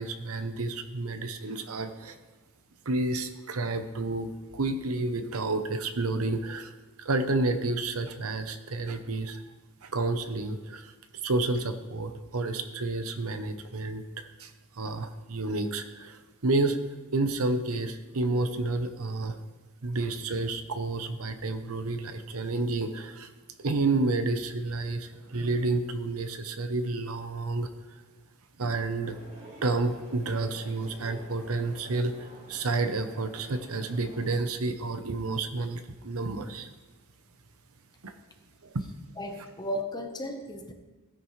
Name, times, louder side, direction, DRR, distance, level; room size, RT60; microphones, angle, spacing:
voice 1, 0.0-2.2 2.9-6.7 7.0-9.4 9.8-10.9 11.2-14.5 14.8-16.8 17.1-19.4 19.8-23.3 23.6-27.7 28.6-29.2 29.6-36.7 38.0-38.1, right 2 dB, 70° right, 8 dB, 0.9 m, -30 dB
sound 1, 29.0-34.4, right 1 dB, 35° right, 4.5 m, -49 dB
voice 2, 39.2-40.7, equal, 20° left, 5 dB, 1.0 m, -35 dB
16.5 x 10.0 x 3.2 m, 1.2 s
head